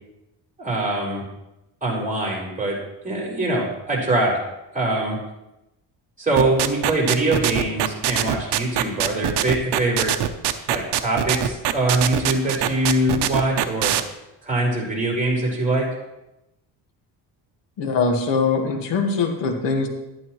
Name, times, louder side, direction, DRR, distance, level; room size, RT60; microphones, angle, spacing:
voice 1, 0.6-1.3 1.8-2.8 3.0-4.4 4.7-5.2 6.2-10.1 10.7-13.9 14.4-15.9, right 2 dB, 20° right, -3 dB, 4.4 m, -23 dB
sound 1, 6.4-14.0, right 12 dB, 70° right, 0.8 m, -22 dB
voice 2, 17.8-19.9, left 4 dB, 85° left, 3 dB, 1.7 m, -22 dB
11.5 x 11.0 x 3.1 m, 0.93 s
cardioid pair, 110°, 42 cm